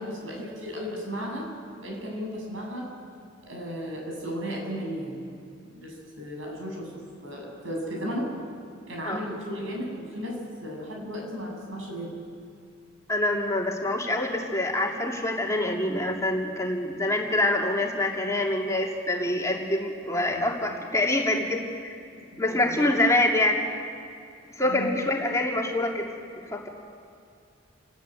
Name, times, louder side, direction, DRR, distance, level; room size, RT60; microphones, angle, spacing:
voice 1, 0.0-1.5 1.8-3.0 3.5-5.3 5.7-8.4 8.9-12.1 20.3-20.8 22.3-22.9 24.6-25.1, equal, 75° right, 1 dB, 7.4 m, -35 dB
voice 2, 13.1-22.0 22.4-23.7 24.6-26.1 26.4-26.7, left 1 dB, 15° left, -1 dB, 2.8 m, -26 dB
29.5 x 20.5 x 9.2 m, 2.5 s
head